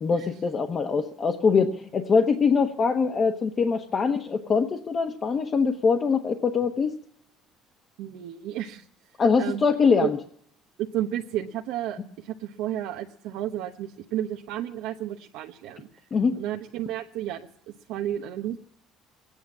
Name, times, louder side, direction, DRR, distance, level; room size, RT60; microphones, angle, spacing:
voice 1, 0.0-7.0 9.2-10.2 16.1-16.4, left 5 dB, 35° left, 4 dB, 1.0 m, -23 dB
voice 2, 8.0-8.8 9.4-9.6 10.0-10.1 10.8-15.9 16.4-17.5 17.9-18.6, right 12 dB, 80° right, 2 dB, 1.0 m, -32 dB
21.5 x 9.3 x 7.2 m, 0.67 s
cardioid pair, 125°, 0 cm